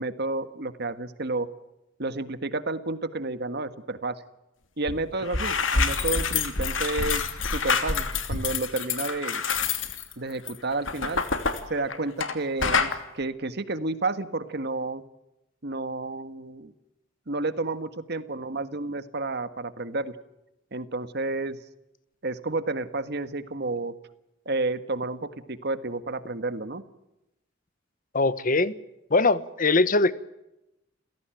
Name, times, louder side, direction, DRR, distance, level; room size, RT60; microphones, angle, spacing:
voice 1, 0.0-1.5 2.0-4.2 4.8-9.4 10.2-11.2 11.7-15.0 15.6-16.7 17.3-20.1 20.7-21.6 22.2-23.9 24.4-26.8, right 2 dB, 55° right, 11 dB, 1.6 m, -31 dB
sound 1, 4.9-5.0 5.2-12.3 12.6-13.0, left 5 dB, 80° left, 2.8 m, -27 dB
voice 2, 28.1-28.7 29.1-30.1, left 3 dB, 45° left, 15 dB, 1.1 m, -21 dB
29.0 x 17.0 x 9.1 m, 0.90 s
head